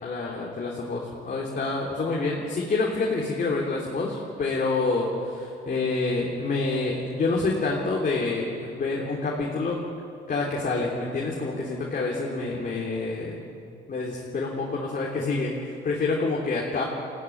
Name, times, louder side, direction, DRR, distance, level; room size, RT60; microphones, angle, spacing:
voice 1, 0.0-9.8 10.3-13.4 13.9-16.8, left 3 dB, 45° left, -3 dB, 3.4 m, -27 dB
22.0 x 16.0 x 9.7 m, 2.6 s
cardioid pair, 90°, 20 cm